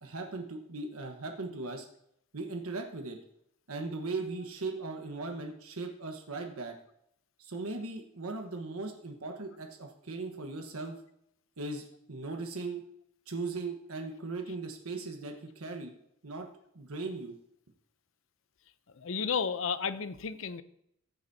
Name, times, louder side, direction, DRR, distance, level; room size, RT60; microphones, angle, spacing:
voice 1, 0.0-1.9 2.3-3.2 3.7-6.8 7.4-11.0 11.6-12.8 13.3-15.9 16.2-16.5 16.7-17.3, right 3 dB, 90° right, 3 dB, 1.3 m, -38 dB
voice 2, 19.0-20.6, left 6 dB, 65° left, 13 dB, 0.6 m, -32 dB
15.5 x 8.1 x 2.8 m, 0.73 s
head